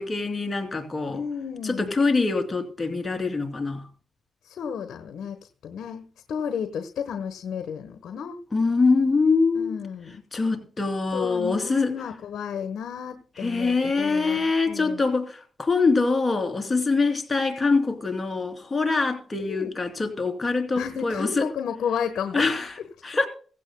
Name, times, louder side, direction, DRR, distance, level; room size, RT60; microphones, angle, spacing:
voice 1, 0.0-1.2 1.6-3.9 8.5-9.7 10.3-11.9 13.4-21.5 22.3-22.7 23.0-23.3, left 4 dB, 25° left, 3.0 m, -24 dB
voice 2, 1.1-1.9 4.4-8.4 9.5-10.2 11.1-15.0 19.4-19.7 20.8-22.5, left 7 dB, 80° left, 1.2 m, -32 dB
17.0 x 15.5 x 2.2 m
cardioid pair, 70°, 0 cm